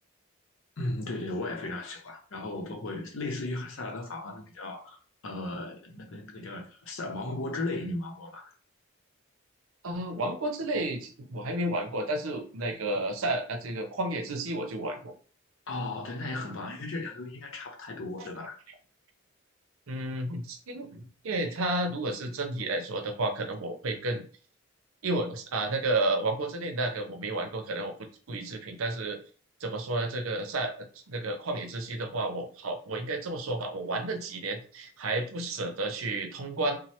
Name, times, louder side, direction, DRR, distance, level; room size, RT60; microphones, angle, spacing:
voice 1, 0.8-8.4 15.7-18.6, left 2 dB, 70° left, 0.7 m, -36 dB
voice 2, 9.8-15.1 19.9-24.2 25.0-27.9 28.3-29.2 29.6-36.8, right 2 dB, 85° right, 0.6 m, -31 dB
2.8 x 2.1 x 3.1 m
head